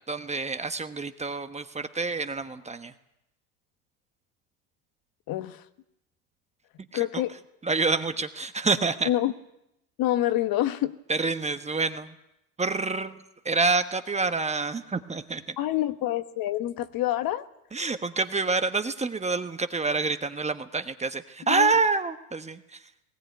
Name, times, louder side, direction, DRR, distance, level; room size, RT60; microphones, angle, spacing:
voice 1, 0.0-2.9 6.9-7.0 7.6-9.1 11.1-12.1 12.6-15.6 17.7-22.8, right 4 dB, 15° right, 9 dB, 1.2 m, -27 dB
voice 2, 5.3-5.6 6.9-7.3 9.0-9.3 10.0-10.9 15.6-17.4 21.5-21.7, left 14 dB, 50° left, 11 dB, 1.3 m, -27 dB
19.5 x 17.0 x 9.3 m, 0.85 s
supercardioid pair, 95°, 43 cm